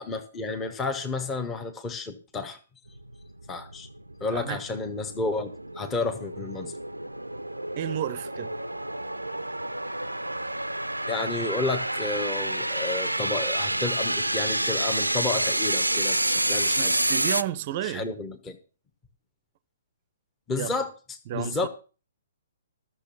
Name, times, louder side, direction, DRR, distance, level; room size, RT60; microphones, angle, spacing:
voice 1, 0.0-2.6 3.5-3.9 4.2-6.7 11.1-17.0 17.8-18.6 20.5-20.9 21.3-21.7, left 3 dB, 15° left, 1.2 m, -31 dB
sound 1, 2.9-17.4, right 1 dB, 85° right, 0.6 m, -29 dB
voice 2, 7.8-8.5 16.8-18.1 20.6-20.7 21.3-21.7, right 11 dB, 35° right, 0.7 m, -31 dB
13.5 x 6.8 x 7.0 m
figure-of-eight pair, 125°, 0 cm